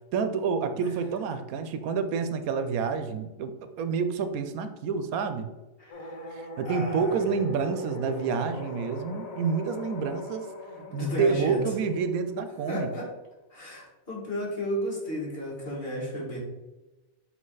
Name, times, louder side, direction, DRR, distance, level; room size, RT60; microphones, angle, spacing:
voice 1, 0.1-5.5 6.3-10.5 10.9-13.0, right 5 dB, 80° right, 9 dB, 1.0 m, -28 dB
voice 2, 5.8-6.3 6.7-7.2 10.7-11.6 12.7-13.1 13.5-16.4, equal, 40° left, -4 dB, 2.0 m, -33 dB
sound 1, 5.9-12.9, left 2 dB, 70° left, 1.6 m, -42 dB
7.5 x 3.2 x 3.9 m, 1.1 s
omnidirectional pair, 1.5 m